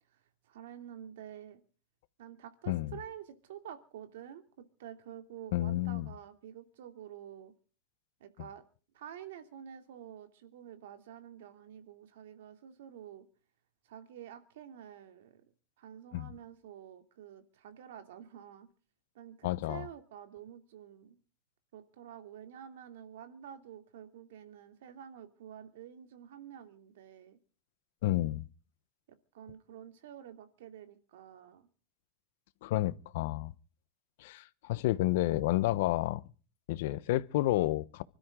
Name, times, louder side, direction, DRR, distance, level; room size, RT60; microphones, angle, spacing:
voice 1, 0.1-1.6 2.2-7.5 8.2-8.6 8.9-13.2 13.8-15.4 15.8-18.7 19.1-21.2 21.7-27.4 29.3-31.7, right 10 dB, 75° right, 2.8 m, -49 dB
voice 2, 2.7-3.0 5.5-6.1 16.1-16.3 19.4-19.9 28.0-28.4 32.6-33.5 34.2-36.2 36.7-38.0, left 16 dB, 65° left, 0.9 m, -30 dB
25.0 x 13.0 x 3.8 m
supercardioid pair, 150°, 0 cm